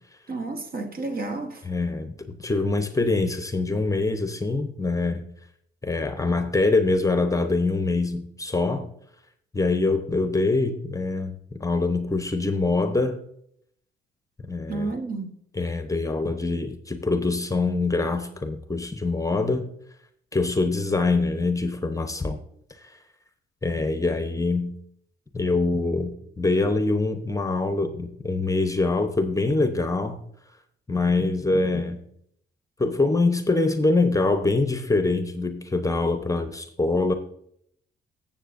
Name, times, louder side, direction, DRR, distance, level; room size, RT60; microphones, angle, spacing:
voice 1, 0.3-1.7 14.7-15.3, right 3 dB, 45° right, 1.2 m, -31 dB
voice 2, 1.6-5.3 5.8-8.9 9.5-13.2 14.4-14.9 15.6-19.7 20.3-22.4 23.6-24.7 25.3-30.2 30.9-32.0 32.8-37.1, left 3 dB, 15° left, 0.8 m, -24 dB
14.5 x 7.4 x 2.6 m
cardioid pair, 90°, 20 cm